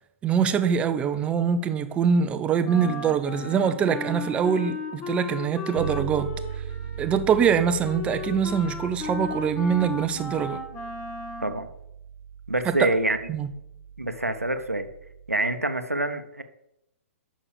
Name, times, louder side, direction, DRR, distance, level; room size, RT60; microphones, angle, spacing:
voice 1, 0.2-6.3 7.0-10.6 12.8-12.9 13.3-13.5, right 7 dB, 15° right, 0.7 m, -24 dB
Wind instrument woodwind instrument, 2.6-11.6, left 2 dB, 25° left, 1.4 m, -35 dB
Bass guitar, 5.8-15.5, right 7 dB, 60° right, 0.6 m, -39 dB
voice 2, 12.5-13.2 14.0-14.9 15.3-16.4, right 2 dB, 90° right, 1.0 m, -26 dB
8.8 x 6.3 x 6.7 m
figure-of-eight pair, 120°, 8 cm